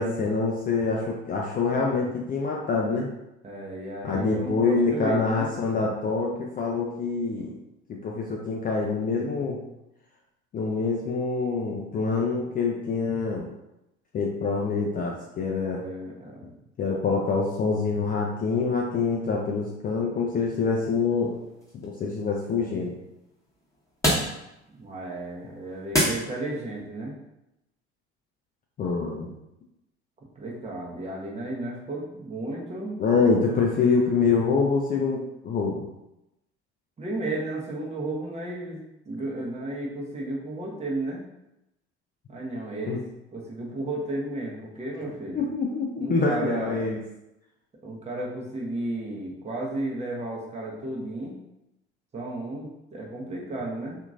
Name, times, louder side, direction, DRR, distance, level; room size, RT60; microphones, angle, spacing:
voice 1, 0.0-3.1 4.0-7.5 7.9-9.6 10.5-13.5 14.1-15.8 16.8-21.4 21.8-23.0 28.8-29.3 33.0-35.9 42.9-43.0 45.3-47.0, left 4 dB, 25° left, -2 dB, 0.5 m, -25 dB
voice 2, 3.4-5.5 15.6-16.5 24.7-27.1 30.4-33.0 37.0-41.2 42.3-43.0 43.3-45.4 46.0-46.9 47.8-51.4 52.1-54.0, right 2 dB, 20° right, -3 dB, 0.9 m, -33 dB
sound 1, 20.8-26.8, equal, 10° left, 1.2 m, -32 dB
2.9 x 2.6 x 2.4 m, 0.89 s
figure-of-eight pair, 60°, 33 cm